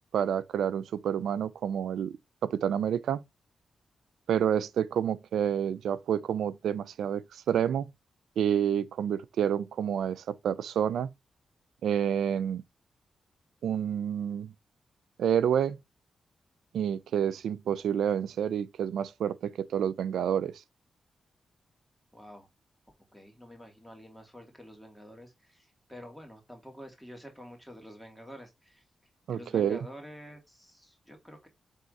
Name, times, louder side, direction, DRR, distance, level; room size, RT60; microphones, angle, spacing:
voice 1, 0.1-3.2 4.3-7.9 8.4-11.1 11.8-12.6 13.6-14.5 15.2-15.8 16.7-20.5 29.3-29.8, right 9 dB, 85° right, 0.5 m, -29 dB
voice 2, 22.1-22.5 23.1-28.8 29.3-31.5, equal, ahead, 2.7 m, -48 dB
7.5 x 3.6 x 4.1 m
cardioid pair, 65°, 0 cm